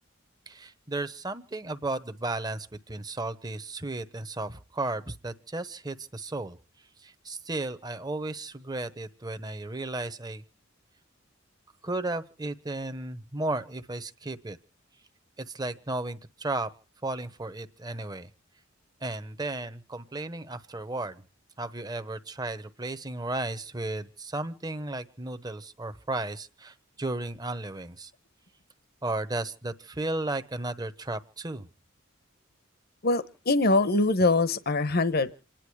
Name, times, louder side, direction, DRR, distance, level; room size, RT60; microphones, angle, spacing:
voice 1, 0.5-6.6 7.0-10.4 11.8-14.6 15.4-16.7 17.0-18.3 19.0-21.2 21.6-28.1 29.0-31.7, right 2 dB, 20° right, 10 dB, 1.0 m, -34 dB
voice 2, 33.0-35.3, left 2 dB, 50° left, 13 dB, 1.0 m, -23 dB
28.0 x 10.5 x 4.8 m, 0.39 s
head